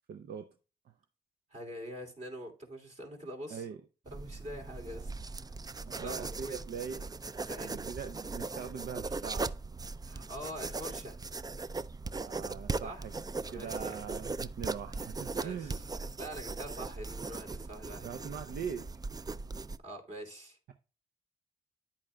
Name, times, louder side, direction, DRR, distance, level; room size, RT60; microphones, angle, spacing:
voice 1, 0.1-0.5 3.5-3.8 5.9-7.1 7.6-9.5 12.2-13.1 13.5-15.8 18.0-18.9, right 7 dB, 70° right, 0.6 m, -41 dB
voice 2, 1.5-3.6 4.1-5.3 5.7-6.6 7.4-7.9 10.0-11.1 12.8-13.0 13.5-14.3 15.3-15.8 16.2-18.1 19.8-20.6, equal, 45° right, 2.8 m, -44 dB
sound 1, 4.1-19.8, right 3 dB, 20° right, 0.4 m, -39 dB
10.0 x 8.6 x 2.3 m
supercardioid pair, 45°, 17 cm